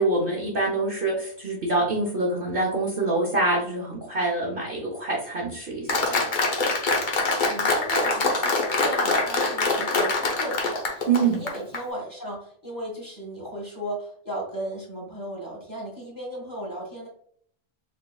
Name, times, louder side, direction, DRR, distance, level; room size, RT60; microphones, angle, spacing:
voice 1, 0.0-6.2 11.1-11.4, right 3 dB, 50° right, -2 dB, 0.9 m, -25 dB
Applause, 5.9-11.8, left 3 dB, 45° left, 0.8 m, -24 dB
voice 2, 7.5-17.1, right 1 dB, 15° left, -3 dB, 1.6 m, -35 dB
3.9 x 3.5 x 2.3 m, 0.62 s
omnidirectional pair, 1.3 m